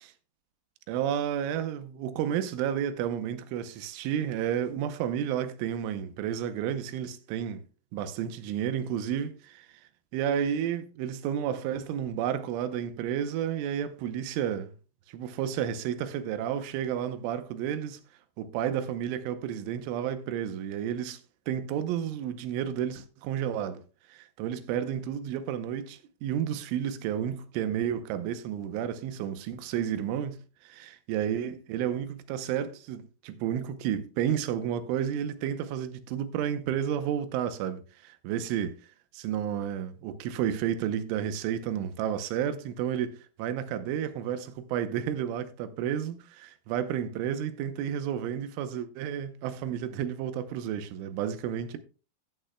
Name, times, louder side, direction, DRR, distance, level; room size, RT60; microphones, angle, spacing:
voice 1, 0.9-7.6 7.9-9.7 10.1-14.7 15.1-18.0 18.4-21.2 21.5-23.8 24.1-38.8 39.1-51.8, right 9 dB, 85° right, 3.3 m, -31 dB
15.0 x 9.0 x 2.2 m
omnidirectional pair, 5.5 m